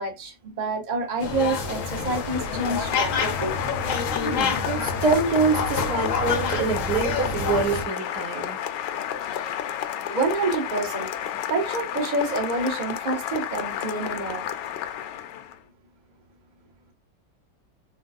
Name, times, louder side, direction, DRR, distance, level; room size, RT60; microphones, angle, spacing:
voice 1, 0.0-3.6 9.4-9.5 10.1-11.1 11.5-14.5, right 3 dB, 35° right, 0.8 m, -28 dB
Applause, 1.1-15.6, left 10 dB, 75° left, 1.1 m, -32 dB
sound 1, 1.2-7.8, left 4 dB, 60° left, 0.9 m, -28 dB
voice 2, 4.2-8.6, right 4 dB, 60° right, 1.7 m, -25 dB
4.1 x 2.3 x 2.3 m
omnidirectional pair, 2.0 m